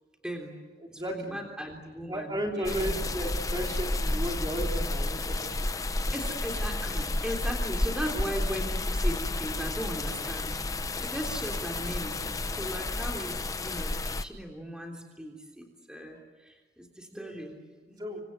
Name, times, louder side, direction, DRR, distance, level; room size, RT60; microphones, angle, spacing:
voice 1, 0.2-0.5 0.9-3.0 6.1-10.5 11.0-12.2 12.5-18.2, equal, 5° right, 1 dB, 3.4 m, -38 dB
voice 2, 0.8-1.4 2.1-5.6 18.0-18.2, right 1 dB, 20° right, 1 dB, 3.4 m, -34 dB
sound 1, 2.6-14.2, left 2 dB, 20° left, 0.8 m, -31 dB
27.5 x 25.5 x 8.2 m, 1.3 s
head